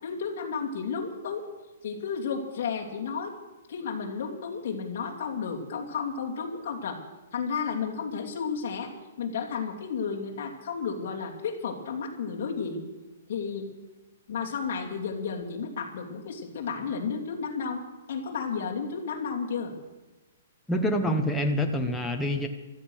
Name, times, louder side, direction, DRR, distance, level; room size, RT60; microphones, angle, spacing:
voice 1, 0.0-1.5 1.8-3.3 3.7-7.0 7.3-8.9 9.2-12.8 13.3-13.7 14.3-17.8 18.1-19.7, left 5 dB, 40° left, -3 dB, 3.0 m, -32 dB
voice 2, 20.7-22.5, equal, 5° left, 1 dB, 0.7 m, -26 dB
16.0 x 13.0 x 6.4 m, 1.1 s
hypercardioid pair, 180°, 0 cm